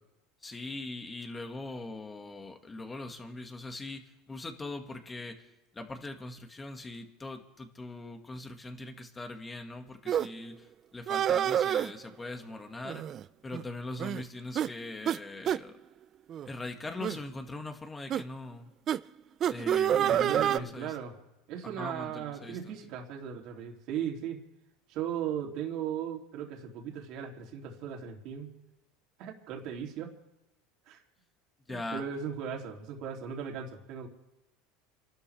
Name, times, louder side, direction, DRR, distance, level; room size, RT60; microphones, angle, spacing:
voice 1, 0.4-5.5 5.7-13.0 13.4-15.8 16.5-18.7 19.4-21.0 21.6-22.8 31.7-32.0, left 2 dB, 15° left, 5 dB, 2.0 m, -41 dB
sound 1, 10.1-10.3 11.1-11.9 12.9-13.2 13.5-13.6 14.0-14.2 14.6-14.7 15.1-15.2 15.5-15.6 16.3-16.5 17.0-17.2 18.1-18.2 18.9-19.0 19.4-20.6, right 10 dB, 40° right, 0.4 m, -27 dB
voice 2, 19.9-21.1 21.5-24.4 24.9-28.5 29.2-30.1 30.9-31.0 31.7-34.1, right 8 dB, 60° right, 1 dB, 3.0 m, -37 dB
28.5 x 12.5 x 3.5 m, 0.96 s
supercardioid pair, 110°, 0 cm